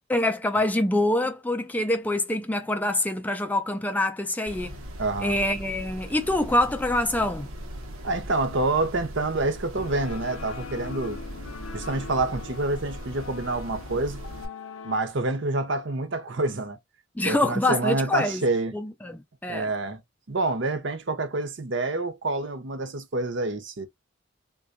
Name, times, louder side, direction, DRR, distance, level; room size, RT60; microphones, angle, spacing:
voice 1, 0.1-4.8 5.2-7.5 17.2-18.4 18.7-19.7, left 1 dB, 10° left, 0.3 m, -25 dB
sound 1, 4.5-14.5, equal, 85° right, 0.9 m, -39 dB
voice 2, 5.0-5.4 8.0-11.2 11.7-14.2 14.8-16.8 17.2-18.7 19.5-20.0 20.3-23.9, right 2 dB, 60° right, 0.7 m, -27 dB
sound 2, 9.7-15.0, left 5 dB, 85° left, 0.5 m, -41 dB
3.7 x 2.3 x 2.5 m
head